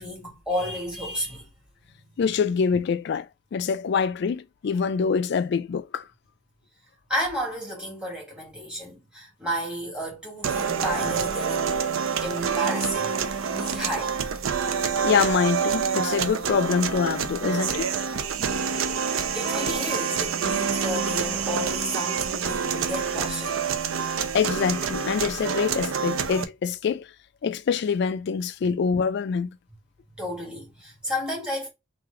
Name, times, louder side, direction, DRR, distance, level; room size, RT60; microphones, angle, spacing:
voice 1, 0.0-1.5 1.8-2.1 7.1-11.8 12.2-14.3 18.7-18.9 19.3-23.6 30.1-31.7, equal, 5° right, 1.5 m, -32 dB
voice 2, 2.2-6.1 15.0-17.9 24.3-27.1 27.4-29.6, left 6 dB, 55° left, 0.3 m, -25 dB
sound 1, 10.4-26.4, right 6 dB, 80° right, 0.5 m, -27 dB
3.1 x 2.5 x 3.6 m
head